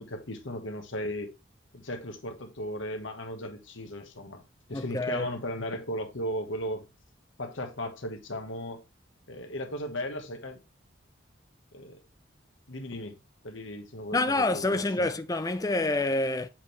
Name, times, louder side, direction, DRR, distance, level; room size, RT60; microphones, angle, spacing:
voice 1, 0.0-1.3 1.7-4.4 4.7-6.9 7.4-8.8 9.3-10.6 11.7-12.0 12.7-13.2 13.4-15.1, left 1 dB, 80° left, 1.4 m, -36 dB
voice 2, 4.7-5.3 14.1-16.5, left 2 dB, 20° left, 0.5 m, -27 dB
7.5 x 4.5 x 3.2 m
head